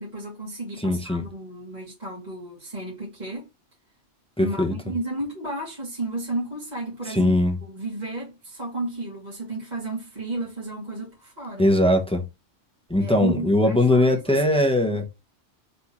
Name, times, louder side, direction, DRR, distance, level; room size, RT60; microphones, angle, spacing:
voice 1, 0.0-3.5 4.4-7.3 7.6-11.7 13.0-14.4, right 2 dB, 40° right, 2.3 m, -33 dB
voice 2, 0.8-1.2 4.4-4.7 7.1-7.6 11.6-12.2 12.9-15.1, left 1 dB, 5° left, 0.7 m, -20 dB
4.2 x 3.5 x 2.9 m
omnidirectional pair, 1.2 m